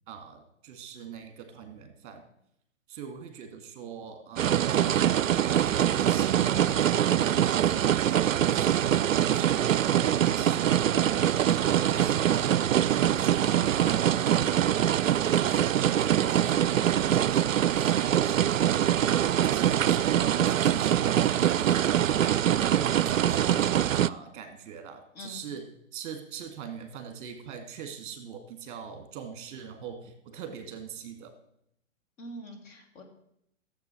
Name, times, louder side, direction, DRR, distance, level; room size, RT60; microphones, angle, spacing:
voice 1, 0.1-2.2 2.9-4.6 5.3-9.6 10.3-12.6 13.1-31.3, right 7 dB, 40° right, 7 dB, 2.1 m, -42 dB
sound 1, 4.4-24.1, right 10 dB, 80° right, 0.5 m, -24 dB
voice 2, 32.2-33.0, equal, 25° left, 1 dB, 2.1 m, -43 dB
14.0 x 7.6 x 6.3 m, 0.76 s
figure-of-eight pair, 120°, 39 cm